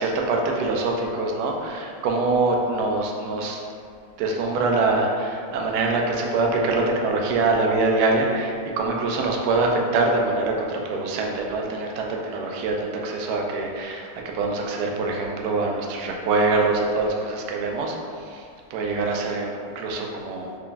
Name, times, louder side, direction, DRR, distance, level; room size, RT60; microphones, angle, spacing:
voice 1, 0.0-3.6 4.2-17.9 18.3-18.4 18.7-20.5, right 3 dB, 75° right, 0 dB, 0.9 m, -24 dB
3.5 x 2.3 x 3.8 m, 2.2 s
omnidirectional pair, 2.2 m